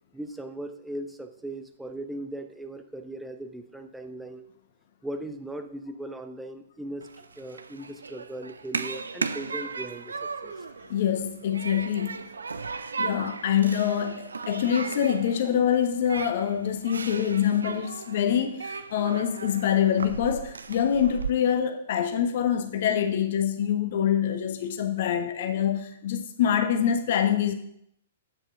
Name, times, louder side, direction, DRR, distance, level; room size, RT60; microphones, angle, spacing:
voice 1, 0.1-4.4 5.0-10.5, right 1 dB, 5° right, 0.8 m, -38 dB
Human group actions, 7.0-21.3, right 4 dB, 70° right, 0.6 m, -36 dB
voice 2, 10.9-12.2 13.0-27.5, left 9 dB, 50° left, 1.2 m, -25 dB
8.7 x 7.0 x 5.7 m
figure-of-eight pair, 110°, 0 cm